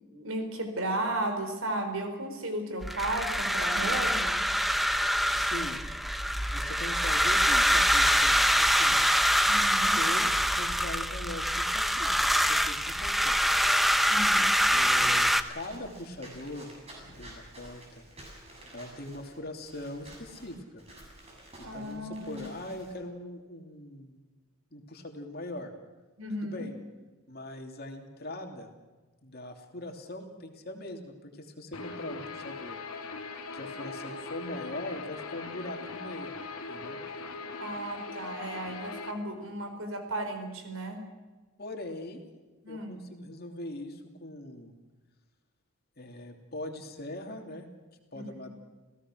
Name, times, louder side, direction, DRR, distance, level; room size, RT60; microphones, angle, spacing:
voice 1, 0.1-4.4 9.5-9.9 14.1-14.5 21.6-22.4 26.2-26.6 37.6-41.0 42.6-43.0 48.1-48.5, right 1 dB, 70° right, 6 dB, 4.5 m, -34 dB
sound 1, 2.8-15.4, equal, ahead, 0.7 m, -25 dB
voice 2, 5.4-5.8 6.5-9.1 9.9-12.1 12.5-13.6 14.7-16.7 17.2-18.0 18.7-20.8 21.6-24.1 24.7-25.7 26.4-26.7 27.3-28.7 29.2-32.8 33.5-36.3 36.7-37.0 41.6-42.2 42.7-44.7 46.0-47.7 48.1-48.5, left 1 dB, 45° left, 3 dB, 2.9 m, -41 dB
Walk footsteps / Squeak, 15.0-22.9, right 1 dB, 30° right, 7.1 m, -50 dB
Guitar, 31.7-39.1, left 4 dB, 85° left, 2.9 m, -40 dB
29.0 x 17.0 x 6.3 m, 1.3 s
head